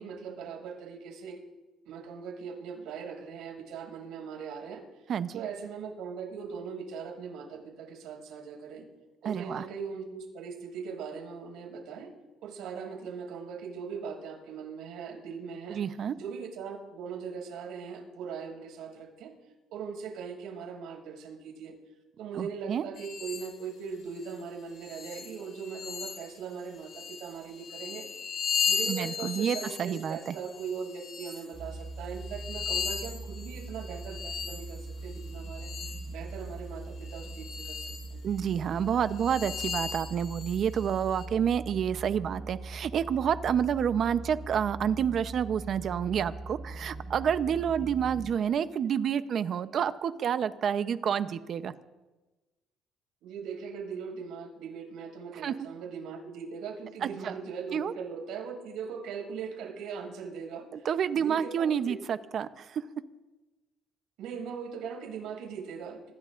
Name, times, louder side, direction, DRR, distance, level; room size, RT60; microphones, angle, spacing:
voice 1, 0.0-1.4 1.8-4.8 5.3-8.8 9.2-12.1 12.4-15.8 16.2-19.3 19.7-21.7 22.2-28.1 28.7-35.7 36.1-38.3 47.7-48.0 53.2-60.9 61.2-61.9 64.2-66.1, right 6 dB, 80° right, 1 dB, 6.3 m, -40 dB
voice 2, 5.1-5.4 9.2-9.7 15.7-16.1 22.4-22.8 28.9-30.3 38.2-51.7 55.4-55.5 57.0-57.3 57.7-57.9 60.7-62.8, right 8 dB, 45° right, 11 dB, 0.8 m, -29 dB
sound 1, 23.0-23.5 24.2-24.3 24.8-26.4 26.8-31.5 32.0-36.1 37.0-38.1 38.5-38.6 39.1-41.3, left 5 dB, 50° left, 2.6 m, -36 dB
sound 2, 31.5-48.3, right 2 dB, 20° right, 5.2 m, -41 dB
26.0 x 20.5 x 2.6 m, 1.2 s
cardioid pair, 145°, 0 cm